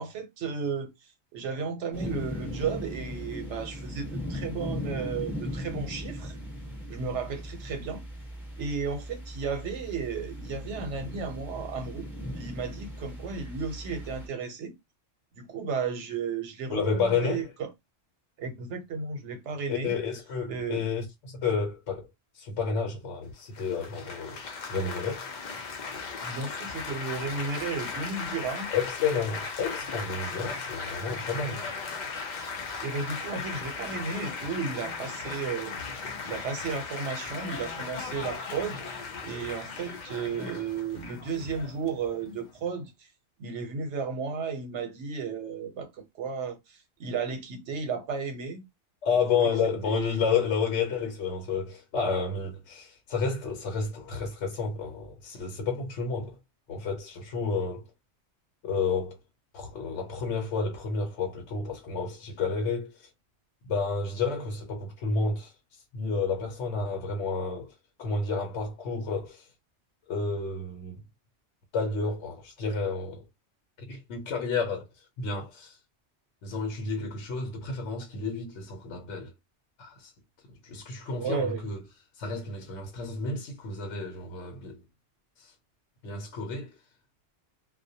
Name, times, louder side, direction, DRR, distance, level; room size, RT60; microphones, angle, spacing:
voice 1, 0.0-6.4 6.9-8.0 8.6-14.7 15.4-17.7 18.4-20.0 20.5-20.8 26.2-28.7 32.8-35.7 36.2-42.9 43.4-48.6 49.3-49.5 49.8-50.2 81.1-81.6, right 5 dB, 80° right, 1.0 m, -34 dB
sound 1, 1.9-14.3, equal, ahead, 0.9 m, -38 dB
voice 2, 16.7-17.4 19.7-22.1 22.3-24.4 24.7-25.2 28.7-31.6 49.0-56.3 56.7-57.8 58.6-59.2 59.5-63.1 63.7-65.5 65.9-67.7 68.0-69.5 70.1-71.0 71.7-73.2 73.9-74.8 75.2-75.8 76.4-79.3 79.8-80.1 80.6-81.8 82.2-84.8 85.4-85.5 86.0-86.7, left 5 dB, 85° left, 1.0 m, -30 dB
Laughter / Applause / Chatter, 23.5-42.7, left 4 dB, 55° left, 0.5 m, -37 dB
2.2 x 2.1 x 2.7 m
omnidirectional pair, 1.2 m